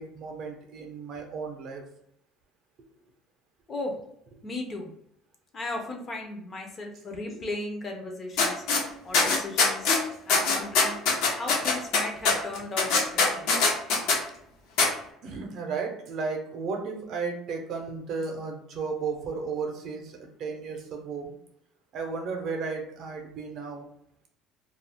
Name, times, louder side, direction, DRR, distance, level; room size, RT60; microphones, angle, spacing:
voice 1, 0.0-1.8 15.2-21.3 21.9-23.8, right 4 dB, 50° right, 3 dB, 0.6 m, -34 dB
voice 2, 3.7-4.0 4.4-4.9 5.5-8.6 9.0-9.9 10.3-11.0 11.3-13.5, left 2 dB, 30° left, 2 dB, 0.5 m, -36 dB
sound 1, 8.4-8.8 9.1-10.0 10.3-14.2 14.8-14.9, left 4 dB, 75° left, 0.7 m, -22 dB
2.3 x 2.0 x 3.4 m, 0.72 s
cardioid pair, 135°, 0 cm